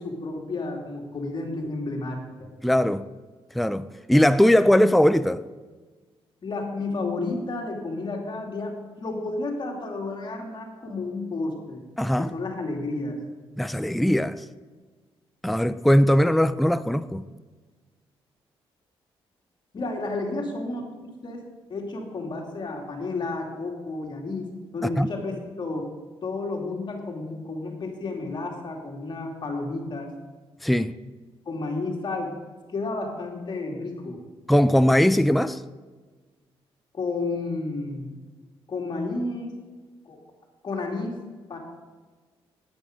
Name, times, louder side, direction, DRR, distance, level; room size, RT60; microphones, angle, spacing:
voice 1, 0.0-2.5 6.4-11.8 12.2-13.2 19.7-20.8 21.2-24.5 24.7-25.9 26.2-30.1 31.5-32.4 32.7-34.2 36.9-38.1 38.7-39.5 40.1-40.2 40.6-41.1 41.5-41.6, left 3 dB, 45° left, 2.6 m, -31 dB
voice 2, 2.6-3.1 3.5-5.4 12.0-12.3 13.6-14.4 15.4-17.2 25.0-25.1 30.6-30.9 34.5-35.6, equal, ahead, 0.4 m, -20 dB
11.0 x 9.3 x 5.2 m
cardioid pair, 85°, 10 cm